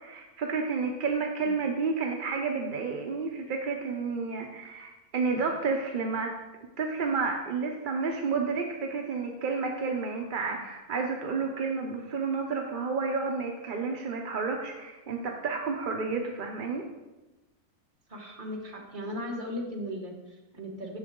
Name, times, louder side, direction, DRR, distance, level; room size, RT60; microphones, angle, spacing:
voice 1, 0.0-6.3 6.8-16.8, right 4 dB, 50° right, 2 dB, 0.6 m, -31 dB
voice 2, 18.1-21.0, left 1 dB, 35° right, 0 dB, 1.3 m, -37 dB
9.0 x 6.8 x 3.7 m, 1.1 s
omnidirectional pair, 1.6 m